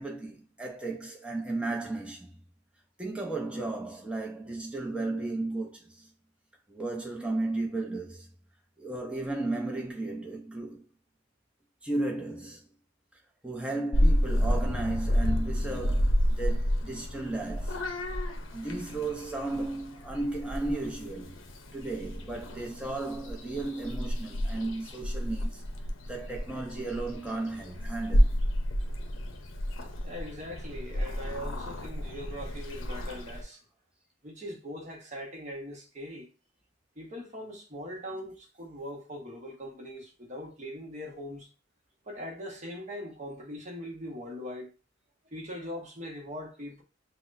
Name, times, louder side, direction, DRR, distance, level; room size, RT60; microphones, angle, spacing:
voice 1, 0.0-2.3 3.0-6.1 6.7-8.3 8.8-10.8 11.8-12.6 13.4-17.8 18.5-21.4 21.7-25.6 26.1-28.4, right 2 dB, 5° right, 0.7 m, -34 dB
Purr / Meow, 13.9-33.4, equal, 75° left, 0.6 m, -30 dB
voice 2, 30.0-33.6 34.2-36.3 37.0-41.5 42.1-44.7 45.3-46.8, equal, 35° right, 1.0 m, -41 dB
5.9 x 2.2 x 2.6 m
head